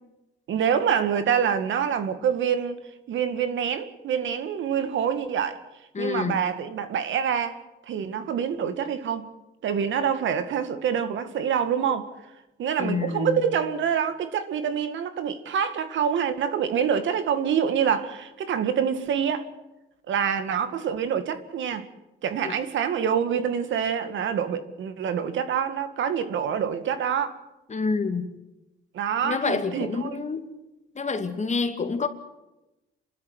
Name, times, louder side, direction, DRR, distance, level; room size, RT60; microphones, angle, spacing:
voice 1, 0.5-2.8 3.1-5.6 6.0-7.6 7.9-9.3 9.6-12.1 12.6-19.4 20.1-21.9 22.2-27.4 28.9-30.2, right 8 dB, 75° right, 2.1 m, -26 dB
voice 2, 5.9-6.4 12.8-13.4 22.4-22.6 27.7-28.3 29.2-30.5 31.0-32.1, left 4 dB, 35° left, 2.5 m, -27 dB
28.0 x 13.0 x 9.6 m
cardioid pair, 90°, 20 cm